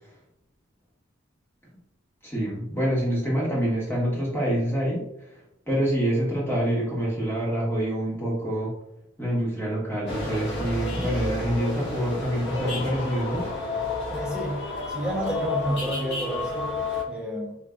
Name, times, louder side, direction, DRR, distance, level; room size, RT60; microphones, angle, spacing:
voice 1, 2.2-5.4 5.7-8.7 9.2-13.5, equal, 10° left, -6 dB, 1.3 m, -26 dB
sound 1, 10.1-17.0, left 3 dB, 60° left, 1.4 m, -31 dB
voice 2, 14.1-17.6, equal, 5° right, -4 dB, 0.9 m, -30 dB
4.4 x 3.1 x 2.4 m, 0.83 s
head